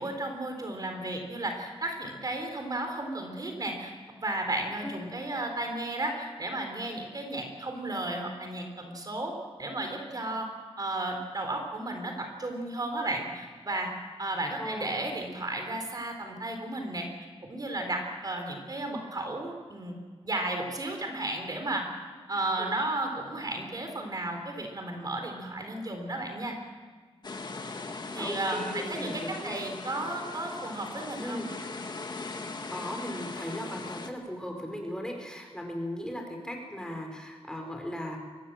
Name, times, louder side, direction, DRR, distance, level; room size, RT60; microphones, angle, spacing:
voice 1, 0.0-3.9 4.2-9.3 9.6-10.5 10.8-13.9 14.2-17.1 17.4-20.0 20.2-21.9 22.3-26.6 28.1-31.5, right 2 dB, 40° right, 4 dB, 4.0 m, -33 dB
voice 2, 14.6-14.9 22.6-22.7 28.1-29.6 31.2-31.5 32.7-38.2, equal, 5° left, 2 dB, 4.9 m, -37 dB
sound 1, 27.2-34.1, left 3 dB, 45° left, 1.9 m, -39 dB
24.5 x 18.5 x 7.7 m, 1.5 s
wide cardioid pair, 110°, 10 cm